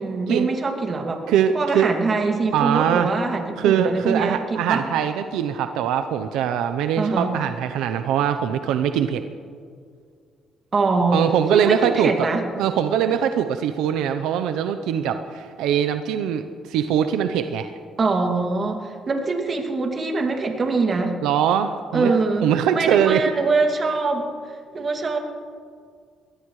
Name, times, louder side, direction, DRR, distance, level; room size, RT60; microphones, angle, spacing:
voice 1, 0.0-1.2 1.5-4.9 7.0-7.3 10.7-11.2 11.5-12.4 18.0-21.1 21.9-22.5 22.7-24.3 24.7-25.2, right 3 dB, 40° right, 3 dB, 2.2 m, -23 dB
voice 2, 1.3-1.9 2.5-3.1 3.6-9.2 11.1-12.3 12.6-17.7 21.2-22.1 22.4-23.2, right 9 dB, 90° right, 8 dB, 0.7 m, -22 dB
21.5 x 17.5 x 3.2 m, 2.1 s
cardioid pair, 100°, 0 cm